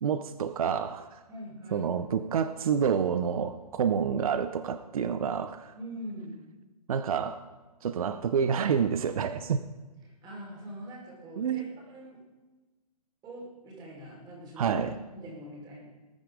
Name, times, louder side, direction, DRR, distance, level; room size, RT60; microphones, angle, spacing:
voice 1, 0.0-1.2 1.7-5.7 6.9-7.4 7.8-9.6 11.4-11.7 14.6-14.9, right 7 dB, 60° right, 12 dB, 0.8 m, -28 dB
voice 2, 1.3-1.9 5.7-6.4 10.0-12.2 13.2-14.8 15.1-15.8, equal, 20° right, -2 dB, 4.6 m, -43 dB
19.0 x 9.3 x 5.0 m, 1.2 s
hypercardioid pair, 135°, 21 cm